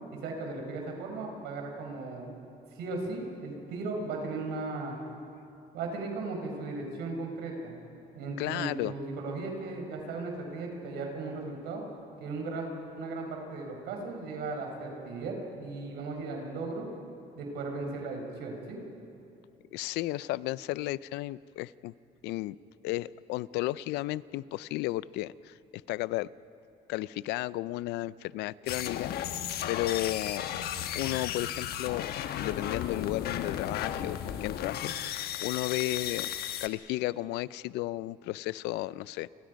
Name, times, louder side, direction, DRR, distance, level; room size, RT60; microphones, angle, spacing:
voice 1, 0.1-2.3 2.8-5.0 5.7-7.8 8.1-11.8 12.2-12.7 12.9-16.9 17.4-18.8, right 3 dB, 85° right, 2 dB, 5.0 m, -36 dB
voice 2, 8.4-8.9 19.7-21.9 22.2-22.6 22.8-25.6 25.9-26.3 26.9-29.1 29.7-30.5 31.0-36.3 36.6-39.3, left 17 dB, 90° left, 19 dB, 0.5 m, -33 dB
sound 1, 28.7-36.7, left 10 dB, 70° left, 1.1 m, -34 dB
30.0 x 24.0 x 5.2 m, 2.6 s
cardioid pair, 110°, 17 cm